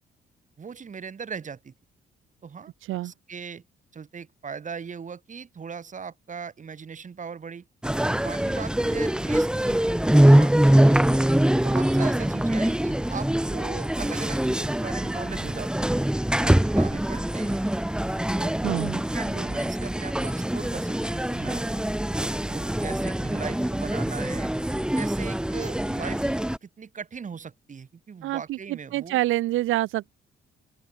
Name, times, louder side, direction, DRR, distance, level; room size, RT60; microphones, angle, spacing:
voice 1, 0.6-1.7 2.4-2.7 3.0-3.6 3.9-7.6 8.2-9.8 10.2-10.5 11.5-16.0 16.4-17.7 18.4-18.5 18.8-21.6 22.5-24.5 24.9-26.3 26.6-29.2, right 6 dB, 40° right, 2.6 m, -39 dB
sound 1, 7.8-26.6, right 1 dB, 5° right, 1.2 m, -23 dB
voice 2, 18.6-19.0 28.2-30.1, right 16 dB, 85° right, 1.0 m, -27 dB
open air
cardioid pair, 90°, 20 cm